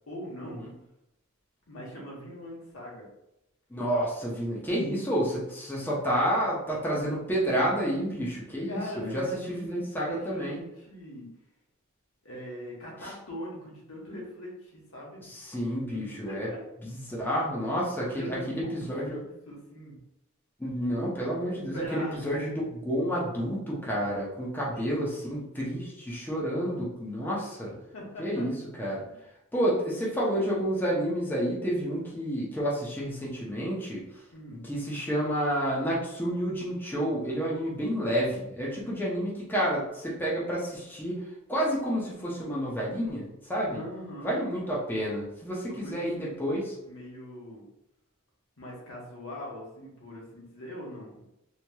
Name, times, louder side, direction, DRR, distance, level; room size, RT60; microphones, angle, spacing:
voice 1, 0.1-0.6 1.7-3.1 4.8-5.0 8.7-11.3 12.2-15.3 15.9-16.6 18.0-20.0 21.7-22.3 24.7-25.1 25.6-26.0 27.9-28.5 34.3-34.6 43.7-44.5 45.6-46.5 46.9-47.6 48.6-51.3, equal, 75° left, -3 dB, 1.0 m, -41 dB
voice 2, 3.7-10.6 13.0-13.1 15.2-16.5 16.8-19.2 20.6-27.7 28.2-29.0 29.5-34.0 34.5-41.2 41.5-43.8 44.2-46.7, equal, 10° left, -5 dB, 0.6 m, -30 dB
3.0 x 2.8 x 2.2 m, 0.87 s
head